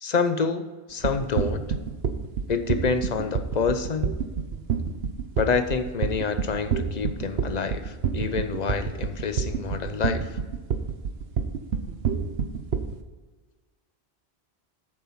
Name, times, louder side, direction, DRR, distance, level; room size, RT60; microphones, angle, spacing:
voice 1, 0.0-1.7 2.5-4.1 5.4-10.4, left 5 dB, 45° left, 9 dB, 0.8 m, -27 dB
sound 1, 1.0-13.0, right 7 dB, 70° right, 1.1 m, -27 dB
8.6 x 7.3 x 5.7 m, 1.3 s
omnidirectional pair, 1.1 m